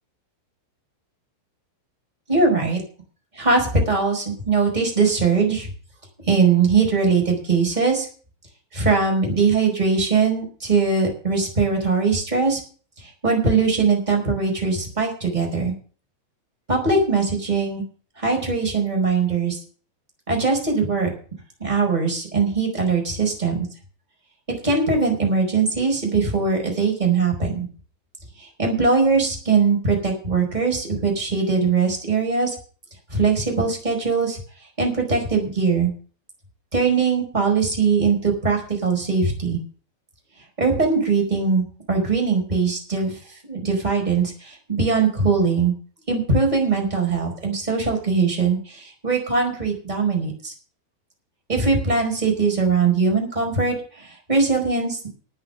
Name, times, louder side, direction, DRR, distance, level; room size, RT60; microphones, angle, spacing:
voice 1, 2.3-2.8 3.4-5.7 6.3-8.1 8.7-12.6 13.0-15.7 16.7-17.8 18.2-19.6 20.3-21.1 21.6-23.6 24.6-27.7 28.6-32.5 33.1-34.4 34.8-35.9 36.7-39.6 40.6-43.1 43.4-45.7 46.1-50.5 51.5-55.1, right 4 dB, 10° right, 1 dB, 4.3 m, -21 dB
9.4 x 8.8 x 8.8 m, 0.41 s
omnidirectional pair, 5.4 m